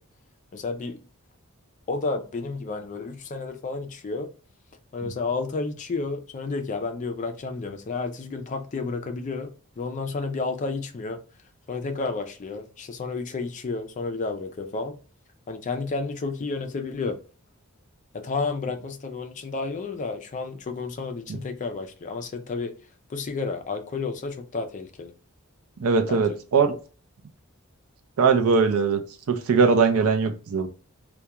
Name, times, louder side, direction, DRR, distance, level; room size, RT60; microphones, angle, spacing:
voice 1, 0.5-1.0 1.9-4.3 4.9-11.2 11.7-15.0 15.5-17.2 18.1-22.7 23.1-25.1 26.1-26.4, left 3 dB, 35° left, 0.4 m, -31 dB
voice 2, 25.8-26.7 28.2-29.0 29.3-30.7, right 5 dB, 75° right, 0.5 m, -21 dB
2.3 x 2.2 x 2.8 m
head